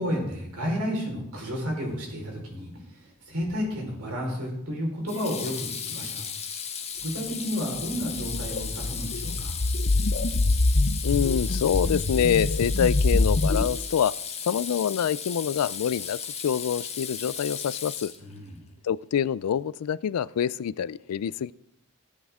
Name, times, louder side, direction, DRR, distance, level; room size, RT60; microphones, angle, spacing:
voice 1, 0.0-6.2 7.0-9.6 18.2-18.6, equal, 85° right, 4.3 m, -32 dB
Water tap faucet / Sink (filling or washing), 3.4-3.8 5.1-18.5, left 7 dB, 30° left, 1.3 m, -35 dB
sound 1, 7.9-13.6, left 2 dB, 55° left, 0.7 m, -25 dB
voice 2, 11.0-14.1 14.5-18.1 18.8-21.5, left 8 dB, 80° left, 0.3 m, -26 dB
16.5 x 8.5 x 3.6 m
head